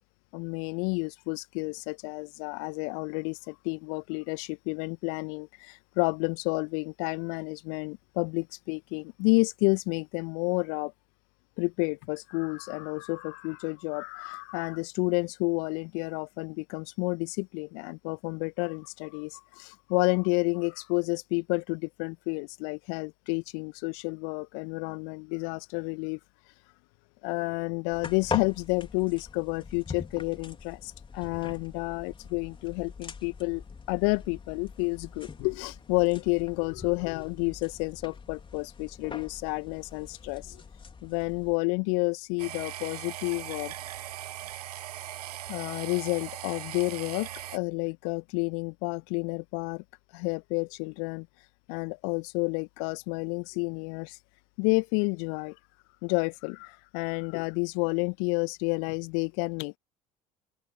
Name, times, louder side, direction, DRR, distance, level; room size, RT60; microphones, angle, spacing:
voice 1, 0.3-10.9 11.6-26.2 27.2-33.6 33.9-40.6 41.0-43.7 45.5-49.8 50.1-51.3 51.7-54.2 54.6-55.6 56.0-59.8, left 38 dB, 60° left, 1.5 m, -30 dB
sound 1, 27.9-41.6, left 5 dB, 25° left, 4.3 m, -42 dB
sound 2, 42.4-47.6, right 13 dB, 75° right, 0.8 m, -39 dB
open air
figure-of-eight pair, 60°, 20 cm